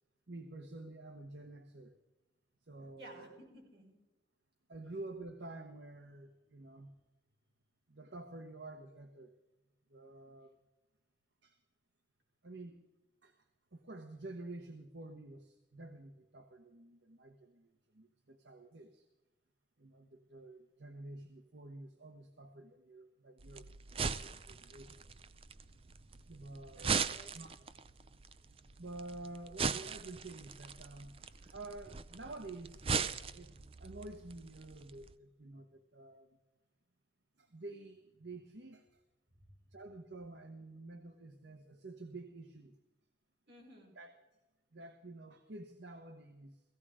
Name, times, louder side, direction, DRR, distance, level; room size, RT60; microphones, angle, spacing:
voice 1, 0.3-2.0 2.6-3.4 4.7-6.9 7.9-9.3 9.9-10.5 11.4-11.6 12.4-12.8 13.2-13.5 13.7-19.1 19.8-23.7 24.2-25.1 26.2-27.5 28.6-33.5 33.8-36.4 37.4-39.0 39.7-42.8 44.0-44.1 44.7-46.6, right 2 dB, 90° right, 7 dB, 1.1 m, -50 dB
voice 2, 3.0-4.0 26.8-27.3 39.4-39.6 43.5-43.9, right 1 dB, 70° right, -1 dB, 5.7 m, -55 dB
sound 1, 23.4-35.1, right 5 dB, 30° right, 0.5 m, -40 dB
16.5 x 16.0 x 5.0 m, 1.0 s
head